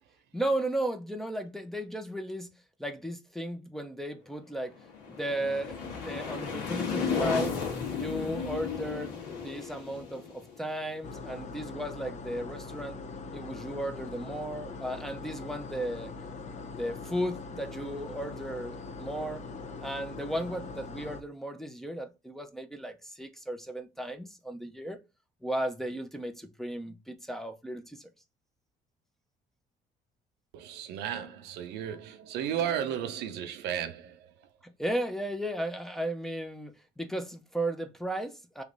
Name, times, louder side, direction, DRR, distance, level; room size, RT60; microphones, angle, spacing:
voice 1, 0.3-2.5 2.8-4.7 5.1-7.6 7.9-13.0 13.3-16.1 16.8-19.4 19.8-25.0 25.4-28.1 34.6-38.6, right 1 dB, ahead, 0.6 m, -35 dB
sound 1, 4.7-11.5, left 6 dB, 85° left, 1.5 m, -34 dB
sound 2, 11.0-21.2, left 4 dB, 45° left, 0.6 m, -42 dB
voice 2, 30.5-34.2, right 9 dB, 85° right, 0.6 m, -34 dB
3.3 x 3.1 x 3.8 m
cardioid pair, 110°, 17 cm